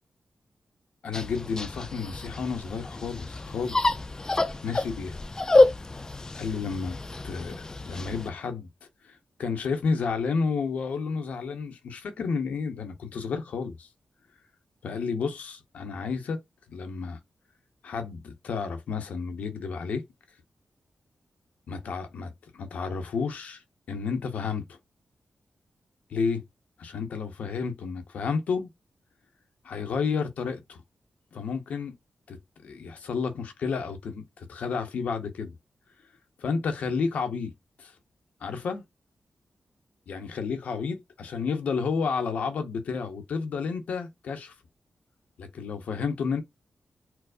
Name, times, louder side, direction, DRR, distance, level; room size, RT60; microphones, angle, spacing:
voice 1, 1.0-3.9 4.6-5.2 6.3-7.0 7.2-7.5 7.9-13.9 14.8-16.4 16.7-17.2 17.8-20.0 21.7-23.6 23.9-24.8 26.1-26.4 26.8-28.7 29.6-30.8 31.3-31.9 32.3-32.4 32.6-35.6 36.4-37.5 37.8-37.9 38.4-38.8 40.1-44.5 45.4-46.4, left 5 dB, 90° left, 0.7 m, -31 dB
sound 1, 1.1-8.3, left 2 dB, 25° left, 0.4 m, -27 dB
4.4 x 2.0 x 2.4 m
cardioid pair, 75°, 2 cm